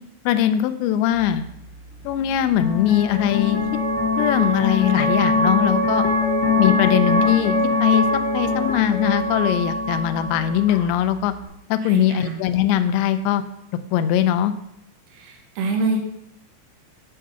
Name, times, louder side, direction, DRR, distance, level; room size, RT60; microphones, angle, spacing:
voice 1, 0.3-1.4 2.0-3.6 4.2-6.1 6.6-11.3 11.7-13.4 13.9-14.5, left 10 dB, 85° left, 10 dB, 2.7 m, -21 dB
sound 1, 1.1-11.5, left 3 dB, 55° left, 2.0 m, -23 dB
voice 2, 11.8-12.3 15.2-16.0, right 3 dB, 85° right, 2 dB, 3.7 m, -25 dB
8.7 x 3.7 x 6.7 m, 0.76 s
omnidirectional pair, 5.3 m